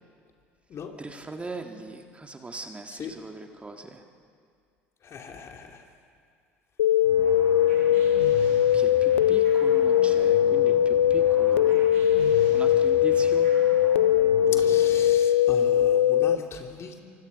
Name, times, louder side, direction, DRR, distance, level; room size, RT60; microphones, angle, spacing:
voice 1, 1.0-4.0 8.7-11.9 12.5-13.5, right 3 dB, 15° right, 4 dB, 1.9 m, -40 dB
voice 2, 5.0-5.8 14.5-17.0, left 6 dB, 40° left, 3 dB, 2.8 m, -39 dB
sound 1, 6.8-16.4, left 10 dB, 80° left, 0.5 m, -20 dB
sound 2, 7.0-15.1, right 4 dB, 80° right, 7.4 m, -40 dB
26.0 x 24.5 x 5.3 m, 2.3 s
hypercardioid pair, 65°, 7 cm